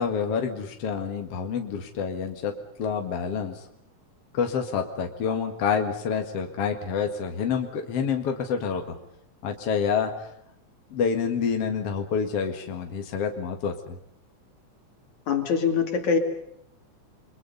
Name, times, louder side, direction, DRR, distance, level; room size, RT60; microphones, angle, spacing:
voice 1, 0.0-2.5 2.8-3.6 4.3-9.0 9.4-10.1 10.9-14.0, left 6 dB, 55° left, 4 dB, 2.8 m, -28 dB
voice 2, 15.3-16.2, left 6 dB, 70° left, 6 dB, 4.0 m, -23 dB
29.5 x 23.5 x 5.5 m, 0.72 s
omnidirectional pair, 3.5 m